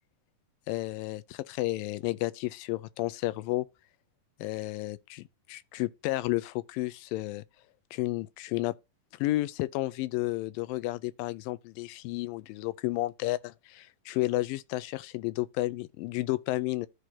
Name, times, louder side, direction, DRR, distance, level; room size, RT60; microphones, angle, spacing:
voice 1, 0.7-3.7 4.4-7.4 7.9-8.7 9.2-16.9, left 18 dB, 90° left, 2.3 m, -32 dB
13.0 x 4.8 x 2.8 m
omnidirectional pair, 4.0 m